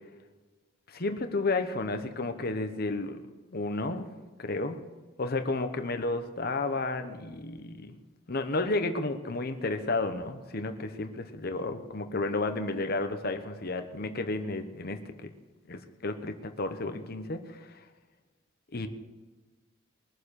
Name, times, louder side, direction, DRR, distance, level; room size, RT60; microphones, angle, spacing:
voice 1, 0.9-3.2 3.5-4.1 4.4-4.8 5.2-7.9 8.3-11.1 11.4-15.3 15.7-17.8 18.7-18.9, left 2 dB, 50° left, 7 dB, 1.0 m, -32 dB
21.5 x 7.3 x 6.5 m, 1.2 s
head